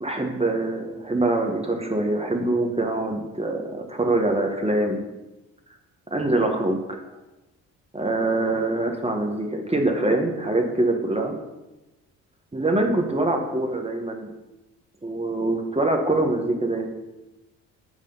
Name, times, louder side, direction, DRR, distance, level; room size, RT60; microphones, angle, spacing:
voice 1, 0.0-5.0 6.1-6.8 7.9-11.3 12.5-14.3 15.0-16.9, right 2 dB, 15° right, 3 dB, 1.4 m, -24 dB
8.4 x 3.4 x 5.5 m, 1.0 s
hypercardioid pair, 55°, 37 cm